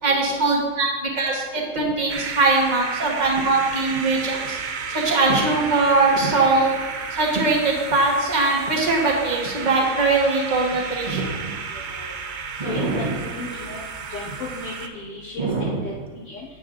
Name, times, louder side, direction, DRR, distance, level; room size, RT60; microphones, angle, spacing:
voice 1, 0.0-4.6 4.9-6.7 7.1-11.5 12.6-13.2 15.4-15.8, right 3 dB, 30° right, -1 dB, 1.4 m, -21 dB
sound 1, 2.1-14.9, right 5 dB, 60° right, 0.5 m, -32 dB
voice 2, 11.7-12.1 12.6-13.8 14.1-16.5, left 2 dB, 60° left, -9 dB, 1.9 m, -35 dB
11.0 x 9.0 x 2.6 m, 1.4 s
omnidirectional pair, 1.5 m